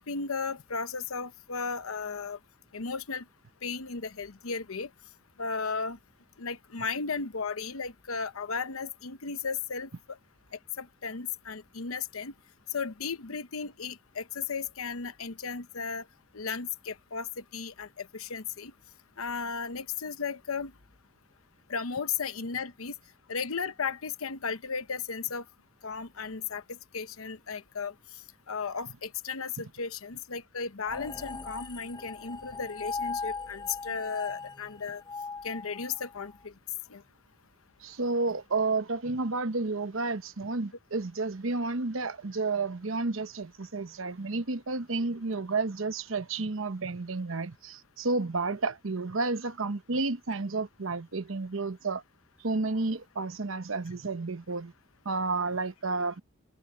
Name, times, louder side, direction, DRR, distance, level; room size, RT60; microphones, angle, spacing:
voice 1, 0.0-2.4 2.7-3.2 3.6-4.9 5.4-6.0 6.4-10.2 10.8-12.3 12.7-16.0 16.3-17.3 17.5-18.7 19.2-20.7 21.7-22.9 23.3-25.4 25.8-27.9 28.5-35.0 35.4-36.5 36.9-37.0, left 5 dB, 75° left, 0.9 m, -35 dB
sound 1, 30.8-36.3, left 4 dB, 20° left, 0.6 m, -39 dB
voice 2, 37.8-52.0 52.4-54.7 55.0-56.2, right 3 dB, 65° right, 0.9 m, -31 dB
head